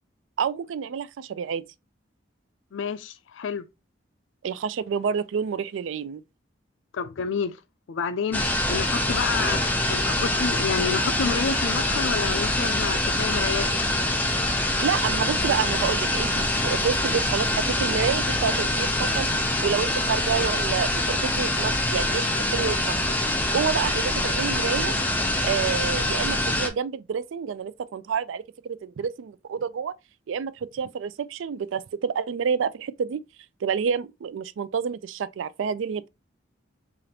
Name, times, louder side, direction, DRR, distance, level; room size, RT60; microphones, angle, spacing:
voice 1, 0.4-1.6 4.4-6.2 14.8-19.3 19.6-23.1 23.5-25.0 25.4-29.9 30.3-33.2 33.6-36.1, right 6 dB, 85° right, 0.4 m, -28 dB
voice 2, 2.7-3.7 6.9-7.6 7.9-13.7, left 6 dB, 80° left, 0.4 m, -29 dB
sound 1, 8.3-26.7, left 1 dB, 10° left, 0.5 m, -25 dB
4.9 x 2.5 x 2.8 m
head